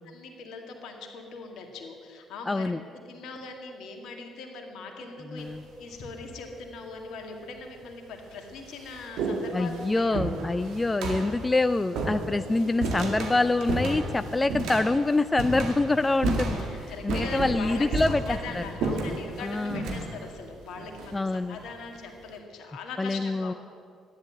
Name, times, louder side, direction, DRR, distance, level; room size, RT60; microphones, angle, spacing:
voice 1, 0.0-5.5 5.7-10.2 15.7-15.8 16.5-23.5, left 4 dB, 70° left, 3 dB, 2.2 m, -41 dB
voice 2, 2.5-2.8 5.3-5.6 9.5-18.6 19.4-19.8 21.1-21.6 23.0-23.5, left 2 dB, 20° left, 12 dB, 0.4 m, -26 dB
sound 1, 5.4-5.8 6.8-6.9 7.7-7.8 8.2-21.7, right 2 dB, 70° right, 2.0 m, -33 dB
13.0 x 10.5 x 7.9 m, 2.3 s
hypercardioid pair, 50°, 0 cm